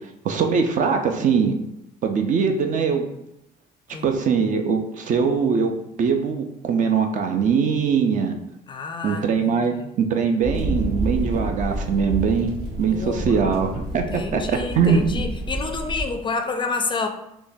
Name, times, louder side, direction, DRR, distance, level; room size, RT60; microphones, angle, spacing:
voice 1, 0.2-1.6 2.0-3.1 4.0-5.7 6.0-8.4 9.0-15.0, right 6 dB, 50° right, 5 dB, 0.5 m, -22 dB
voice 2, 8.7-9.9 12.8-13.5 13.9-17.1, left 4 dB, 30° left, 5 dB, 0.4 m, -29 dB
sound 1, 10.4-16.0, right 1 dB, 70° right, 0.9 m, -29 dB
3.6 x 3.0 x 2.6 m, 0.82 s
cardioid pair, 110°, 17 cm